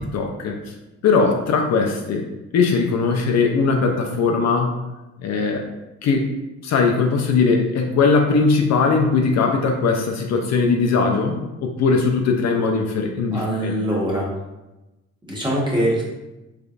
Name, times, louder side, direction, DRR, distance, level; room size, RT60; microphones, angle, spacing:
voice 1, 0.1-0.6 1.0-2.2 2.5-4.7 5.2-5.6 6.0-6.3 6.6-13.8, left 4 dB, 60° left, 2 dB, 0.6 m, -19 dB
voice 2, 13.3-14.3 15.3-16.0, equal, 15° right, -5 dB, 1.3 m, -22 dB
3.6 x 3.3 x 2.5 m, 1.0 s
cardioid pair, 90°, 30 cm